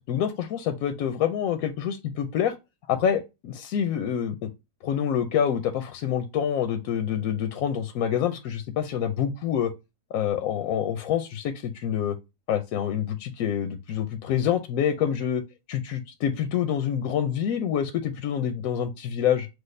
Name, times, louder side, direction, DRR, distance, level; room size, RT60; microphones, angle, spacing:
voice 1, 0.1-2.5 2.9-4.5 4.8-9.7 10.1-12.2 12.5-15.4 15.7-19.5, left 9 dB, 70° left, 0.9 m, -27 dB
6.2 x 2.3 x 3.2 m
omnidirectional pair, 1.7 m